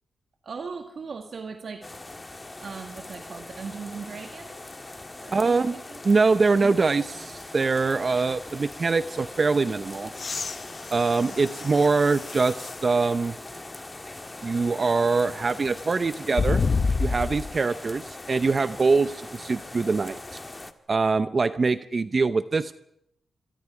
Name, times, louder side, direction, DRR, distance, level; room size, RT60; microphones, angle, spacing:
voice 1, 0.4-1.9 2.6-4.8 5.2-6.0 6.6-6.8 11.2-11.4, right 5 dB, 65° right, 5 dB, 1.7 m, -39 dB
sound 1, 1.8-20.7, left 2 dB, 25° left, 1.6 m, -41 dB
voice 2, 5.3-5.8 6.0-10.1 10.9-13.4 14.4-16.6 17.0-20.4 20.9-22.7, right 4 dB, 45° right, 12 dB, 0.7 m, -23 dB
sound 2, 5.4-11.0, right 1 dB, 10° right, 4.7 m, -53 dB
sound 3, 10.1-12.9 13.5-13.6 16.3-17.6 19.4-19.5, left 4 dB, 50° left, 0.7 m, -28 dB
25.5 x 23.5 x 5.0 m, 0.77 s
cardioid pair, 65°, 0 cm